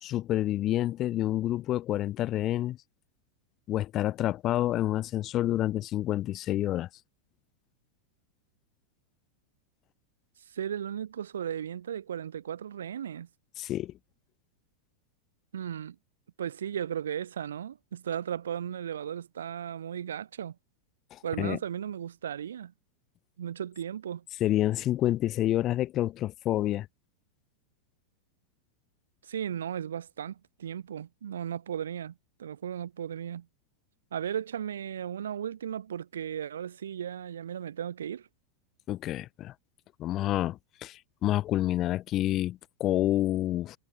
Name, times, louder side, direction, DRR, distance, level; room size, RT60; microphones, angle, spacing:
voice 1, 0.0-2.8 3.7-6.9 13.6-13.9 21.1-21.6 24.4-26.9 38.9-39.5 40.0-43.8, left 14 dB, 35° left, 2.4 m, -28 dB
voice 2, 10.5-13.3 15.5-16.0 16.4-20.6 21.2-22.7 23.4-24.2 29.2-32.1 32.4-33.5 34.1-38.3, right 9 dB, 65° right, 7.2 m, -36 dB
figure-of-eight pair, 90°, 0 cm